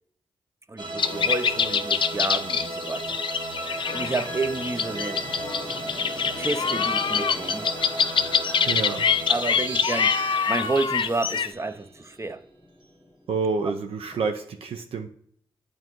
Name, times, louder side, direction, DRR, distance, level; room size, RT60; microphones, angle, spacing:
voice 1, 0.7-3.2 3.9-5.2 6.4-7.6 9.3-12.4, right 3 dB, 30° right, 0.6 m, -30 dB
sound 1, 0.8-12.2, right 2 dB, 55° right, 1.4 m, -35 dB
sound 2, 1.0-11.5, left 6 dB, 55° left, 0.4 m, -25 dB
sound 3, 3.7-14.3, left 1 dB, 15° left, 1.3 m, -45 dB
voice 2, 8.7-9.1 13.3-15.1, right 4 dB, 75° right, 0.5 m, -28 dB
8.7 x 4.0 x 3.0 m
supercardioid pair, 45°, 10 cm